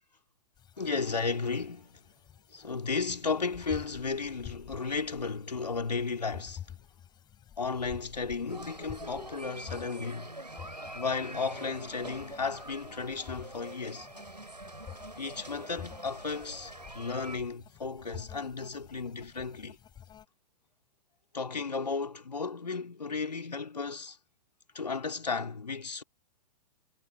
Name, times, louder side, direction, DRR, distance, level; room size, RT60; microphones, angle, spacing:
sound 1, 0.6-20.3, left 10 dB, 20° left, 6.9 m, -50 dB
voice 1, 0.8-2.0 2.5-6.6 7.6-10.3 10.9-14.1 15.2-19.8 21.3-24.2 24.7-26.0, left 4 dB, 75° left, 3.2 m, -34 dB
sound 2, 8.5-17.4, right 2 dB, 85° right, 6.4 m, -45 dB
figure-of-eight pair, 110°, 21 cm